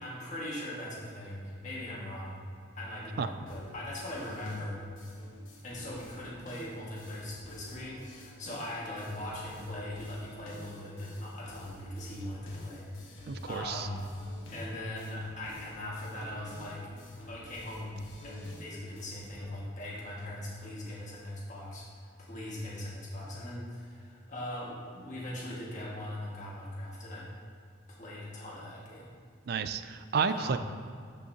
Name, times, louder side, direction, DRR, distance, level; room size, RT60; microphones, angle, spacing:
voice 1, 0.0-2.4 2.7-4.8 5.6-14.1 14.5-16.9 17.3-27.3 28.0-29.1 30.3-30.6, left 1 dB, 35° left, -5 dB, 1.8 m, -40 dB
sound 1, 3.5-19.5, left 1 dB, 75° left, 1.3 m, -51 dB
voice 2, 13.3-13.9 29.5-30.6, right 5 dB, 50° right, 11 dB, 0.3 m, -31 dB
12.0 x 5.4 x 2.8 m, 2.3 s
head